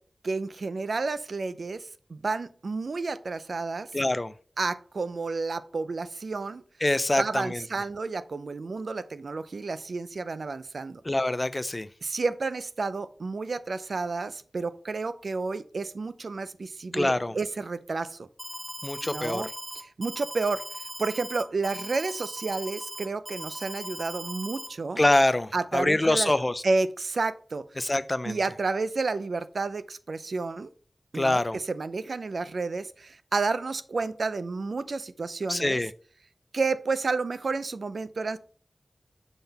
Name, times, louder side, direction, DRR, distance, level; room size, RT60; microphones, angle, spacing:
voice 1, 0.2-3.9 4.6-6.6 7.2-11.0 12.0-18.3 19.1-19.5 19.7-20.6 21.0-25.0 25.5-26.3 26.6-27.9 28.3-30.7 31.1-35.8 36.5-38.4, right 3 dB, 80° right, 0.4 m, -31 dB
voice 2, 3.9-4.3 6.8-7.6 11.1-11.9 16.9-17.3 18.8-19.5 25.0-26.6 27.8-28.4 31.1-31.6 35.5-35.9, left 1 dB, 30° left, 0.4 m, -25 dB
Alarm, 18.4-24.7, right 1 dB, 15° right, 0.7 m, -39 dB
7.0 x 3.9 x 4.1 m
wide cardioid pair, 85°, 0 cm